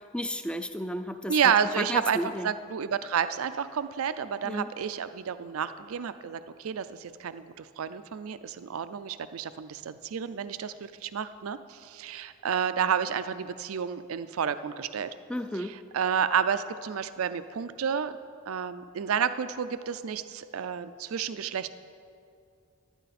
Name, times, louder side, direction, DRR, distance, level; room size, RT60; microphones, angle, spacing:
voice 1, 0.1-2.5 4.4-4.7 15.3-15.8, equal, 5° left, 10 dB, 0.3 m, -33 dB
voice 2, 1.3-15.1 15.5-18.1 18.5-21.7, right 7 dB, 85° right, 12 dB, 0.4 m, -30 dB
15.0 x 11.5 x 4.2 m, 2.4 s
head